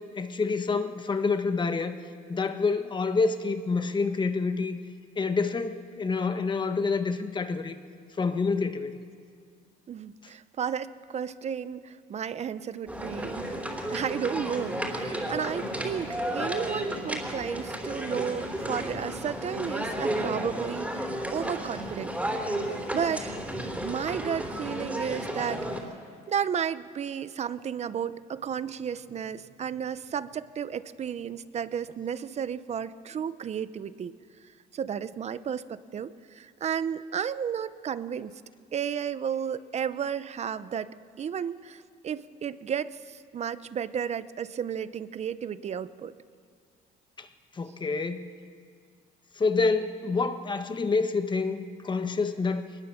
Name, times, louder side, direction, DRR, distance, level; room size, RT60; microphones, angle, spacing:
voice 1, 0.0-2.0 2.3-4.8 5.2-7.7 8.2-9.0 47.2-47.3 47.5-48.3 49.3-52.7, left 4 dB, 25° left, 9 dB, 1.3 m, -27 dB
voice 2, 9.9-13.5 13.9-22.1 22.9-23.4 23.8-25.9 26.3-34.1 34.7-38.3 38.7-40.9 41.2-46.1, right 8 dB, 40° right, 15 dB, 0.7 m, -33 dB
sound 1, 12.9-25.8, right 1 dB, 10° right, 3.6 m, -33 dB
22.0 x 20.0 x 7.2 m, 2.1 s
cardioid pair, 110°, 17 cm